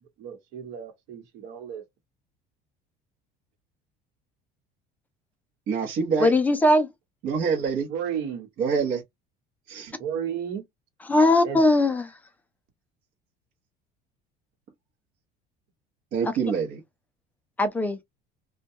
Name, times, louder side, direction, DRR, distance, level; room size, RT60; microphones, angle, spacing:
voice 1, 0.0-1.8 7.9-8.5 9.8-10.7 11.4-11.6, right 8 dB, 70° right, 1.1 m, -33 dB
voice 2, 5.7-6.3 7.2-7.9 8.6-9.0 9.7-9.9 16.1-16.8, right 6 dB, 50° right, 0.8 m, -26 dB
voice 3, 6.2-6.9 11.1-12.1 16.2-16.3 17.6-18.0, left 1 dB, 10° left, 0.3 m, -20 dB
2.2 x 2.2 x 2.7 m
cardioid pair, 160°, 19 cm